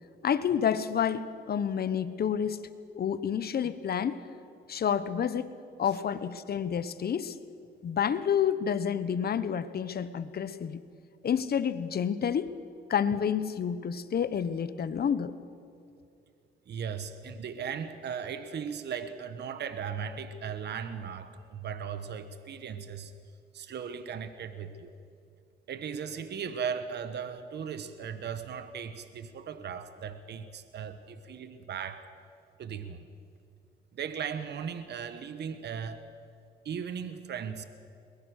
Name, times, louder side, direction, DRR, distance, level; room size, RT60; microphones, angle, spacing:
voice 1, 0.2-2.7 2.9-4.2 4.7-5.5 5.8-7.4 7.8-10.8 11.2-12.5 12.9-15.3, left 8 dB, 50° left, 14 dB, 1.1 m, -29 dB
voice 2, 16.7-23.1 23.5-24.9 25.7-32.1 32.6-33.1 33.9-36.0 36.6-37.6, right 7 dB, 60° right, 11 dB, 1.3 m, -37 dB
22.0 x 20.5 x 6.6 m, 2.5 s
cardioid pair, 90°, 20 cm